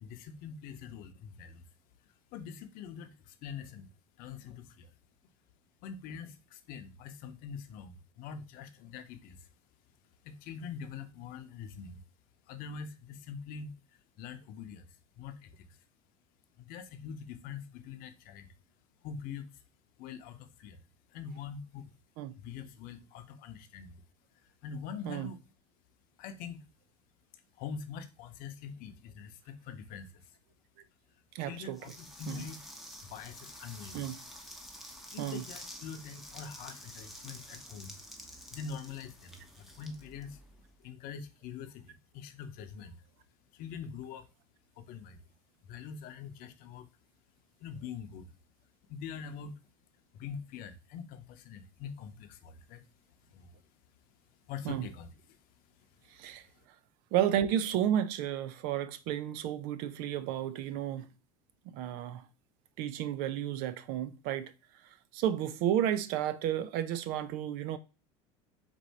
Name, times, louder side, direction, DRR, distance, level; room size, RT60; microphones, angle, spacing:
voice 1, 0.0-1.6 2.3-3.9 4.2-4.9 5.8-9.5 10.2-12.0 12.5-13.8 14.2-14.9 15.2-15.8 16.6-18.5 19.0-19.5 20.0-20.8 21.1-21.9 22.4-24.0 24.6-25.4 26.2-26.6 27.6-30.2 31.4-32.6 33.0-34.1 35.1-38.0 38.5-40.4 40.8-43.0 43.5-44.3 44.8-45.2 45.6-46.9 47.6-48.3 48.9-49.6 50.1-52.8 53.3-53.5 54.5-55.4 55.9-56.6, left 6 dB, 60° left, 0.7 m, -44 dB
voice 2, 31.3-31.8 32.3-32.4 33.9-34.2 35.2-35.4 54.6-54.9 56.2-56.4 57.1-61.0 61.7-62.2 62.8-64.5 65.1-67.8, right 11 dB, 65° right, 0.6 m, -32 dB
sound 1, 31.7-40.7, equal, ahead, 1.0 m, -49 dB
4.5 x 2.7 x 4.1 m
supercardioid pair, 100°, 17 cm